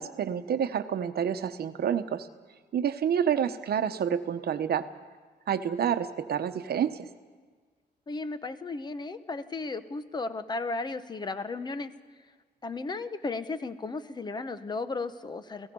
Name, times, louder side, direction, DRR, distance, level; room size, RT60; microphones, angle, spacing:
voice 1, 0.0-2.3 2.7-4.9 5.5-7.1, right 8 dB, 65° right, 9 dB, 1.0 m, -28 dB
voice 2, 8.1-11.9 12.6-15.7, left 3 dB, 25° left, 11 dB, 0.9 m, -35 dB
29.5 x 17.5 x 5.4 m, 1.5 s
wide cardioid pair, 165°, 18 cm